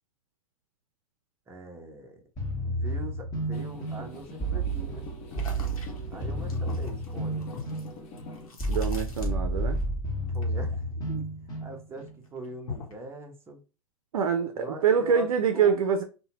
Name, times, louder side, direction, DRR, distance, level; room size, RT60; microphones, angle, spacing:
voice 1, 1.5-2.2 2.6-5.1 6.1-7.5 10.3-11.3 11.6-13.6 14.5-16.0, right 2 dB, 15° right, 0.6 m, -42 dB
sound 1, 2.4-12.1, right 1 dB, 20° left, 0.9 m, -31 dB
sound 2, 3.5-8.5, left 3 dB, 40° left, 0.7 m, -45 dB
sound 3, 5.3-9.8 10.1-11.7 12.1-13.1, left 5 dB, 80° left, 0.9 m, -43 dB
voice 2, 8.7-9.8 14.1-16.0, right 7 dB, 75° right, 0.4 m, -25 dB
2.7 x 2.2 x 2.9 m
hypercardioid pair, 110°, 18 cm